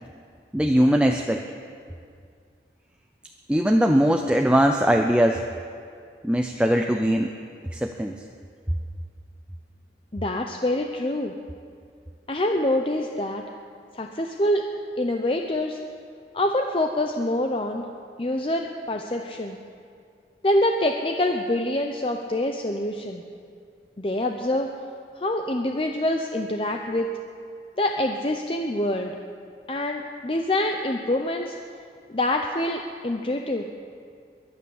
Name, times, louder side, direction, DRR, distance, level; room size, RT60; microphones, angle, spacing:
voice 1, 0.5-1.4 3.5-5.4 6.2-7.3 7.7-8.2, equal, 5° right, 3 dB, 0.5 m, -20 dB
voice 2, 10.1-11.3 12.3-13.4 13.9-14.7 15.0-15.8 16.3-17.9 18.2-19.6 20.4-23.2 24.0-24.7 25.2-27.1 27.8-29.1 29.7-31.6 32.1-33.7, left 1 dB, 30° left, 3 dB, 0.7 m, -25 dB
22.5 x 8.6 x 7.1 m, 2.2 s
head